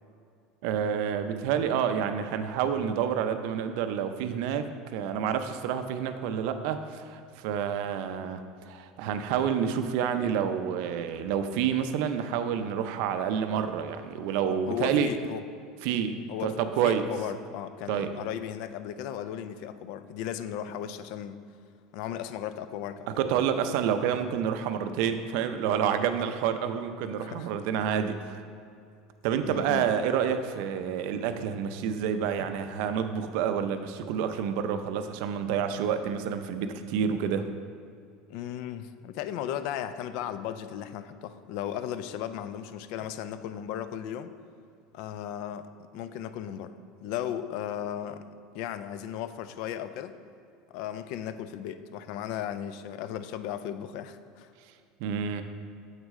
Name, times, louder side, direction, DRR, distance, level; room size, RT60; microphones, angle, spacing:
voice 1, 0.6-15.1 15.8-17.1 17.9-18.1 23.2-28.4 29.2-37.5 55.0-55.4, right 8 dB, 60° right, 9 dB, 0.5 m, -28 dB
voice 2, 14.4-15.4 16.3-16.6 16.8-21.4 21.9-23.1 27.2-27.5 29.4-29.9 38.3-44.3 44.9-45.7 45.9-46.7 47.0-48.2 48.5-50.2 50.7-54.5, left 10 dB, 55° left, 11 dB, 0.3 m, -36 dB
7.4 x 6.2 x 3.7 m, 2.4 s
cardioid pair, 165°, 0 cm